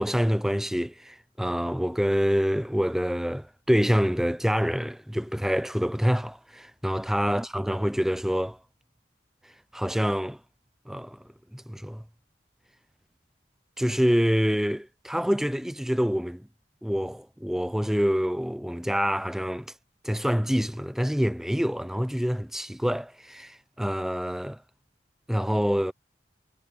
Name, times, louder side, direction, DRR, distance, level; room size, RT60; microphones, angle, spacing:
voice 1, 0.0-8.6 9.7-10.4 10.9-11.2 11.5-12.0 13.8-16.5 16.8-19.7 20.0-24.6 25.3-25.9, equal, ahead, 0.6 m, -26 dB
head